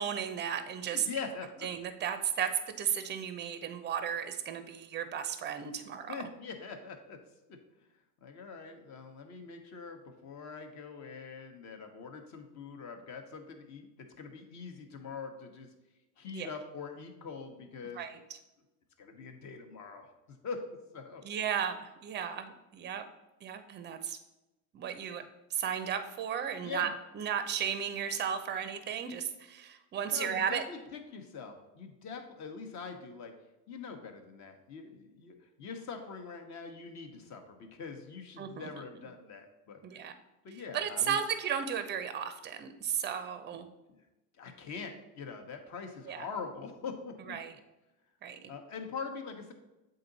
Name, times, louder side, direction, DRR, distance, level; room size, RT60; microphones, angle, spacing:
voice 1, 0.0-1.1 1.6-2.5 2.8-6.3 16.3-16.5 18.0-18.2 21.2-23.0 23.4-24.2 24.7-25.2 25.5-26.9 27.1-30.6 38.4-38.7 39.8-40.1 40.7-43.7 46.1-46.3 47.3-47.5 48.2-48.5, right 8 dB, 25° right, 9 dB, 0.5 m, -34 dB
voice 2, 0.9-1.7 6.1-7.2 7.5-7.6 8.2-15.7 16.2-18.0 19.0-20.6 20.9-21.2 26.6-26.9 30.1-33.3 33.7-40.0 40.4-41.2 43.9-44.0 44.4-47.4 48.5-49.5, left 5 dB, 40° left, 5 dB, 1.1 m, -43 dB
7.7 x 3.9 x 4.0 m, 0.99 s
supercardioid pair, 120°, 45 cm